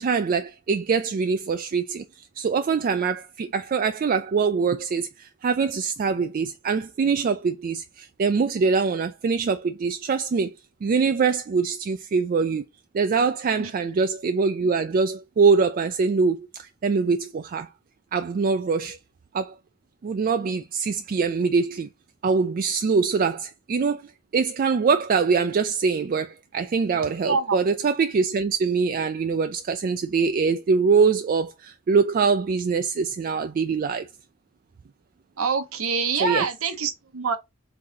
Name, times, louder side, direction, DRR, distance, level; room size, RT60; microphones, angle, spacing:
voice 1, 0.0-2.0 2.4-10.5 10.8-12.6 12.9-17.7 18.1-19.0 19.3-19.5 20.0-21.9 22.2-24.0 24.3-34.1 36.2-36.5, right 5 dB, 40° right, 0.3 m, -23 dB
voice 2, 27.2-27.6 35.4-37.3, right 5 dB, 85° right, 0.9 m, -25 dB
3.9 x 3.7 x 2.8 m
head